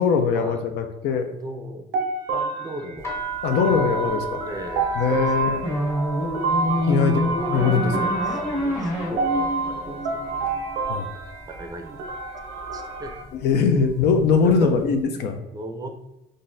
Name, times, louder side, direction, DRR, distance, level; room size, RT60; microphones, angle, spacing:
voice 1, 0.0-1.3 3.4-4.4 4.9-5.7 6.9-8.2 10.9-11.1 13.3-15.4, left 5 dB, 75° left, 6 dB, 0.5 m, -21 dB
voice 2, 1.3-1.9 2.3-3.1 3.4-5.7 6.6-7.4 7.9-10.7 11.4-12.1 12.4-13.1 14.4-14.7 15.5-15.9, right 2 dB, 20° right, 4 dB, 0.4 m, -38 dB
sound 1, 1.9-13.2, right 3 dB, 90° right, 0.6 m, -29 dB
sound 2, 3.0-10.9 11.2-11.8 12.5-12.8 13.0-14.5, right 2 dB, 15° left, 0.8 m, -35 dB
sound 3, 5.6-10.7, left 1 dB, 30° left, 1.4 m, -26 dB
3.8 x 2.5 x 2.6 m, 0.93 s
cardioid pair, 110°, 17 cm